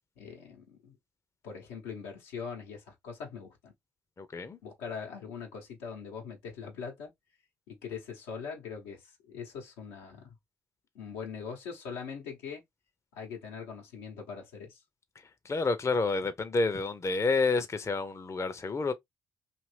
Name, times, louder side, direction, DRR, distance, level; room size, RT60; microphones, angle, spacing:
voice 1, 0.2-1.0 1.4-3.7 4.6-7.1 7.7-9.0 9.3-10.3 10.9-12.6 13.1-14.8, left 6 dB, 80° left, 0.9 m, -42 dB
voice 2, 4.2-4.6 15.4-18.9, left 3 dB, 30° left, 0.6 m, -29 dB
2.7 x 2.5 x 3.1 m
hypercardioid pair, 45°, 9 cm